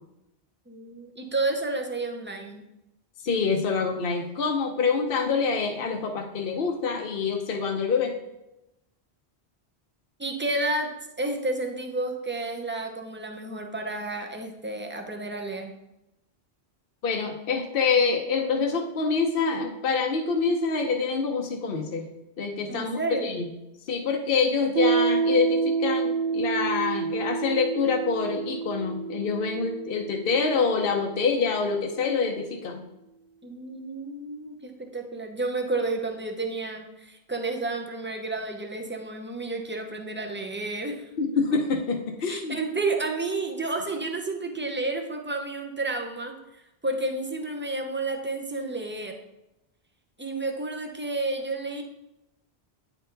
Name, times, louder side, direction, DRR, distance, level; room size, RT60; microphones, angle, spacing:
voice 1, 0.7-2.6 10.2-15.7 22.7-23.4 33.4-41.0 42.3-46.3 46.8-49.2 50.2-51.8, right 2 dB, 10° right, 3 dB, 0.6 m, -31 dB
voice 2, 3.2-8.1 17.0-22.0 22.4-23.5 23.9-32.8 41.2-42.6, left 5 dB, 60° left, 3 dB, 0.9 m, -26 dB
Piano, 24.8-32.0, right 6 dB, 55° right, 1.0 m, -29 dB
9.0 x 4.5 x 3.9 m, 0.90 s
omnidirectional pair, 1.1 m